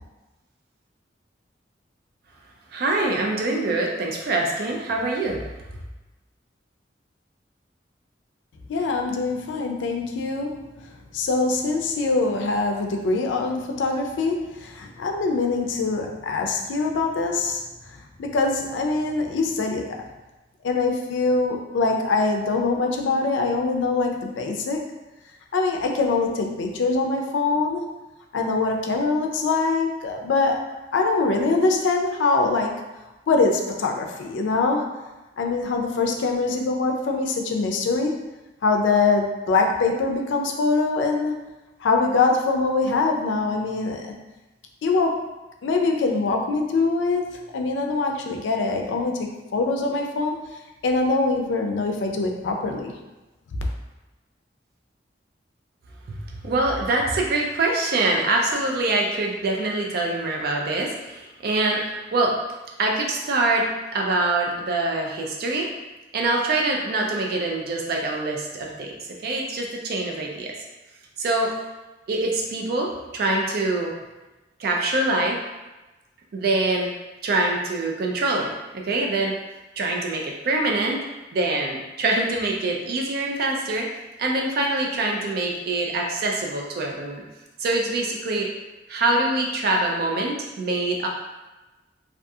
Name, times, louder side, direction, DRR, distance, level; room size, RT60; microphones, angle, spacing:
voice 1, 2.7-5.4 56.1-62.3 62.8-65.7 66.1-68.9 69.2-70.5 71.2-71.5 72.1-73.9 74.6-75.4 76.3-76.9 77.2-79.3 79.8-81.0 81.3-83.9 84.2-87.2 87.6-88.5 88.9-91.1, right 2 dB, 55° right, 0 dB, 0.4 m, -24 dB
voice 2, 8.7-10.6 11.1-17.6 18.2-20.0 20.6-24.8 25.5-27.9 28.3-30.6 30.9-32.7 33.3-34.9 35.4-38.2 38.6-41.4 41.8-44.1 44.8-45.2 45.6-50.4 50.8-52.9, left 3 dB, 90° left, 3 dB, 0.4 m, -23 dB
2.3 x 2.3 x 2.6 m, 1.1 s
head